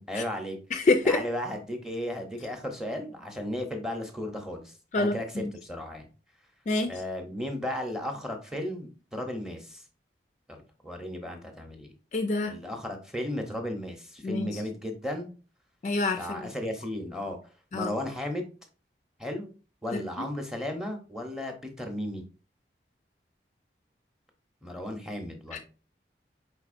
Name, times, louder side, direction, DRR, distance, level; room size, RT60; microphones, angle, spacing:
voice 1, 0.0-0.6 1.0-6.1 6.9-9.8 10.5-11.9 12.5-15.3 16.2-17.4 17.7-18.5 19.2-19.5 19.8-22.2 24.6-25.6, left 1 dB, 5° right, 0.7 m, -35 dB
voice 2, 0.7-1.2 4.9-5.5 6.7-6.9 12.1-12.5 14.2-14.6 15.8-16.4 17.7-17.9 19.9-20.0 25.5-25.6, left 3 dB, 40° left, 0.3 m, -27 dB
4.9 x 3.9 x 2.5 m
head